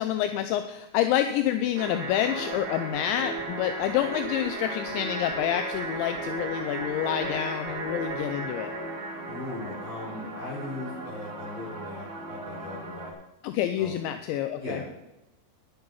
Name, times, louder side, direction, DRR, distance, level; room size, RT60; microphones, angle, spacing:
voice 1, 0.0-8.7 13.4-14.9, left 11 dB, 80° left, 9 dB, 2.8 m, -28 dB
sound 1, 1.7-13.1, right 2 dB, 30° right, 2.3 m, -35 dB
voice 2, 9.3-13.1 13.8-14.0 14.6-14.8, left 2 dB, 25° left, -7 dB, 5.8 m, -38 dB
11.5 x 9.8 x 5.6 m, 0.94 s
omnidirectional pair, 5.5 m